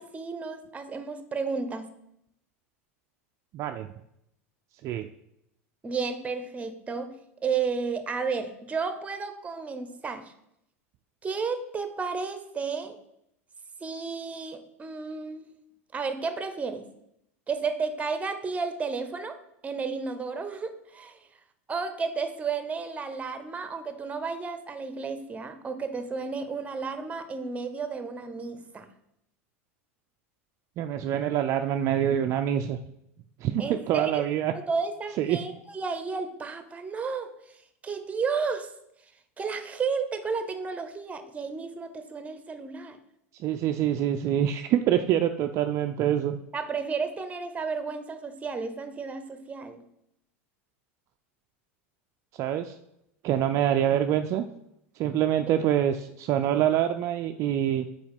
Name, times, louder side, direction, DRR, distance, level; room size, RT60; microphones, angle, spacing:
voice 1, 0.0-1.9 5.8-7.1 7.4-10.3 11.2-13.0 13.8-15.5 15.9-16.8 17.5-19.4 19.6-21.2 21.7-28.9 33.6-34.2 34.5-38.7 39.4-43.0 46.5-49.8, right 5 dB, 20° right, 9 dB, 0.8 m, -32 dB
voice 2, 3.5-3.9 4.8-5.1 30.8-32.8 33.4-34.5 35.2-35.4 43.3-46.4 52.3-52.8 53.2-54.4 55.0-57.9, right 10 dB, 45° right, 7 dB, 0.4 m, -25 dB
4.7 x 4.4 x 5.3 m, 0.78 s
hypercardioid pair, 95°, 7 cm